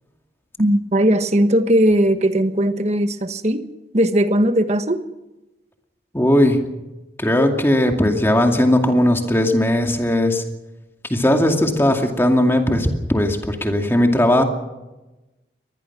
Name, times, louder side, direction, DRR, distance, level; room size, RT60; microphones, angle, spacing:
voice 1, 0.6-3.6 3.9-5.0, right 1 dB, 40° right, 9 dB, 1.3 m, -18 dB
voice 2, 6.1-6.6 7.2-10.4 11.1-14.4, left 1 dB, 15° left, 3 dB, 2.4 m, -17 dB
24.0 x 20.0 x 6.0 m, 1.0 s
head